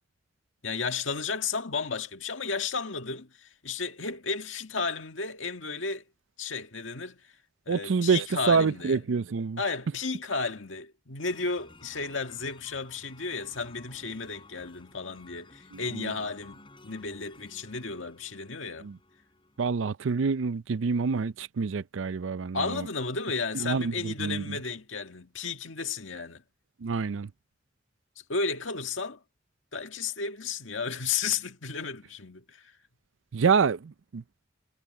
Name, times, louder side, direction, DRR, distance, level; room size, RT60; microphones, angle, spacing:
voice 1, 0.6-6.0 6.4-7.2 7.7-9.0 9.6-18.9 22.5-26.4 28.3-29.2 29.7-32.7, left 4 dB, 90° left, 1.9 m, -33 dB
voice 2, 7.7-9.6 15.7-16.1 18.8-19.0 19.6-22.9 23.5-24.6 26.8-27.3 33.3-34.2, right 5 dB, 85° right, 0.5 m, -27 dB
sound 1, 11.2-19.8, left 2 dB, 30° left, 5.1 m, -54 dB
head